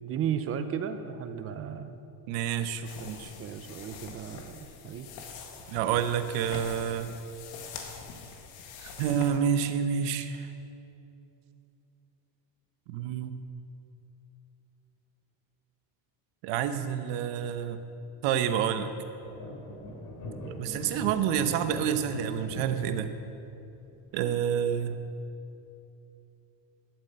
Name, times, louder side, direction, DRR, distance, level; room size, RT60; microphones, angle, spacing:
voice 1, 0.0-2.0 2.8-3.1 3.4-5.1 21.0-21.1, right 8 dB, 30° right, 10 dB, 0.5 m, -35 dB
voice 2, 2.3-3.3 5.7-7.1 8.8-10.5 12.9-13.3 16.4-17.8 18.2-18.9 20.5-23.1 24.1-25.1, right 8 dB, 65° right, 10 dB, 1.0 m, -29 dB
sound 1, 2.8-9.4, left 5 dB, 70° left, 1.8 m, -44 dB
sound 2, 19.2-24.6, left 1 dB, 45° left, 2.7 m, -42 dB
12.0 x 7.5 x 8.0 m, 2.8 s
cardioid pair, 160°, 48 cm